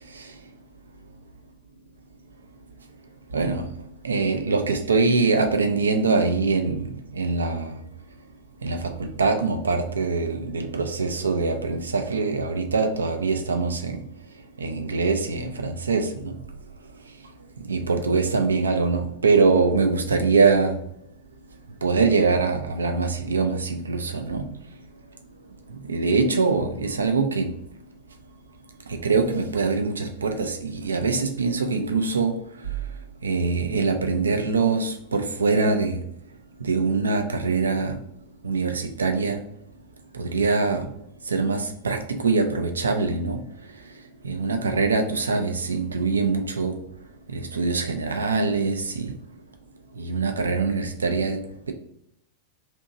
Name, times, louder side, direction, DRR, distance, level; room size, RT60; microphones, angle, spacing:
voice 1, 3.3-3.7 4.0-7.7 8.6-14.0 14.6-16.4 17.7-20.7 21.8-24.5 25.9-27.5 28.9-32.3 33.2-36.0 36.6-37.9 38.4-39.4 40.1-40.8 41.3-43.4 44.2-46.8 47.3-49.1 50.0-51.4, right 4 dB, 75° right, 0.4 m, -23 dB
2.8 x 2.6 x 3.7 m
figure-of-eight pair, 90°, 0 cm